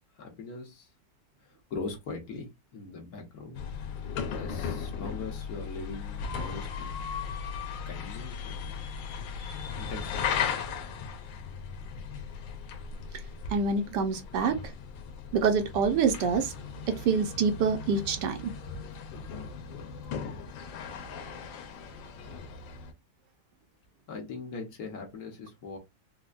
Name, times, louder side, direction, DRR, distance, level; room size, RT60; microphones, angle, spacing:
voice 1, 0.2-0.9 1.4-3.7 4.3-6.9 7.9-8.9 9.8-10.4 24.1-25.8, left 4 dB, 55° left, 1.4 m, -41 dB
sound 1, 3.5-22.9, left 6 dB, 85° left, 1.4 m, -37 dB
voice 2, 13.5-14.6 15.3-16.5 16.9-18.5, right 5 dB, 75° right, 1.2 m, -26 dB
4.5 x 2.1 x 2.4 m
omnidirectional pair, 2.0 m